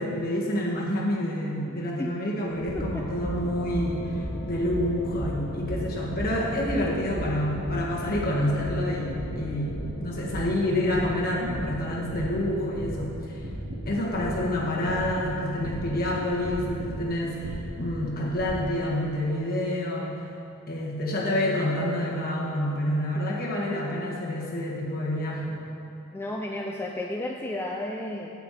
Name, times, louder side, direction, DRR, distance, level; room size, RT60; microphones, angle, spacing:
voice 1, 0.0-4.1 4.4-13.1 13.9-20.2 20.7-25.6, left 1 dB, 45° left, -4 dB, 1.4 m, -28 dB
sound 1, 2.5-18.7, equal, 85° right, 2.1 m, -35 dB
Wind instrument woodwind instrument, 3.1-11.1, left 2 dB, 65° left, 2.2 m, -48 dB
voice 2, 23.2-23.6 26.1-28.3, left 1 dB, 10° left, 0 dB, 0.3 m, -33 dB
8.9 x 7.6 x 4.2 m, 2.7 s
head